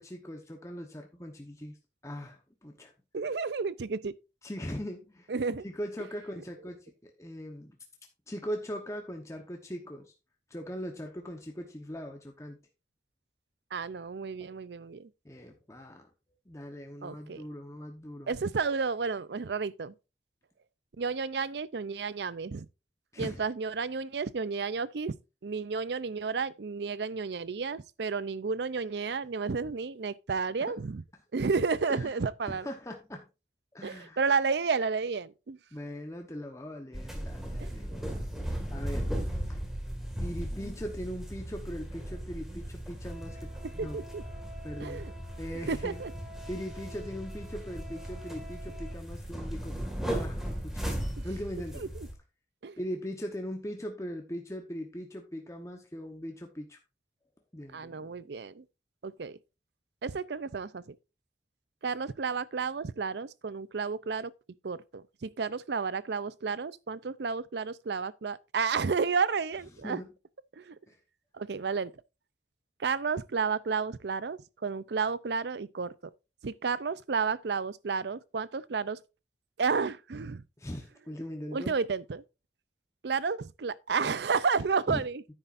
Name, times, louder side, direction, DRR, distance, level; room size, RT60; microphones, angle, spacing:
voice 1, 0.0-1.8 2.0-2.9 4.4-5.3 5.6-7.8 8.3-10.1 10.5-12.6 14.4-14.5 15.2-16.1 16.5-18.4 23.1-23.4 30.6-30.7 31.9-32.1 32.4-33.2 33.7-34.2 35.7-37.9 38.7-39.1 39.5-39.6 40.2-43.5 43.7-44.0 44.6-45.0 45.4-46.0 46.5-49.8 50.0-50.9 51.2-51.9 52.8-56.8 57.5-58.1 69.8-70.1 70.9-71.0 80.6-81.8 84.9-85.0 85.3-85.4, equal, 15° left, 1.0 m, -40 dB
voice 2, 3.1-4.1 5.3-5.6 13.7-15.1 17.0-17.4 18.3-19.9 21.0-22.7 23.2-25.2 25.4-31.0 31.3-32.7 33.8-35.6 37.6-37.9 43.8-44.2 44.8-45.1 45.5-46.1 51.2-51.3 51.7-52.1 52.6-52.8 57.7-58.6 59.0-59.4 60.0-61.0 61.8-64.3 64.6-70.0 70.5-70.8 71.3-71.9 72.8-76.1 76.4-79.0 79.6-80.4 81.5-82.2 83.0-85.2, right 5 dB, 70° right, 0.5 m, -32 dB
sound 1, 36.9-52.1, equal, ahead, 2.0 m, -37 dB
10.0 x 9.1 x 2.6 m
head